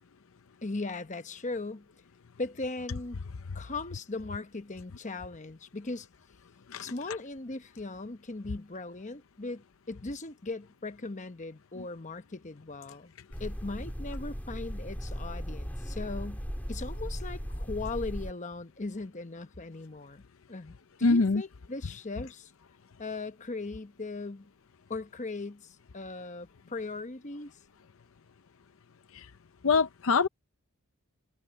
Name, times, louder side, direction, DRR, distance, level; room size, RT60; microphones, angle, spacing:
voice 1, 0.6-1.9 2.4-3.2 3.5-6.1 6.8-13.1 13.4-16.4 16.7-20.2 20.5-22.5 23.0-24.5 24.9-27.5, left 3 dB, 35° left, 1.0 m, -38 dB
sound 1, 13.3-18.3, equal, 10° left, 3.7 m, -37 dB
voice 2, 21.0-21.4 29.1-29.3 29.6-30.3, left 4 dB, 65° left, 0.6 m, -24 dB
head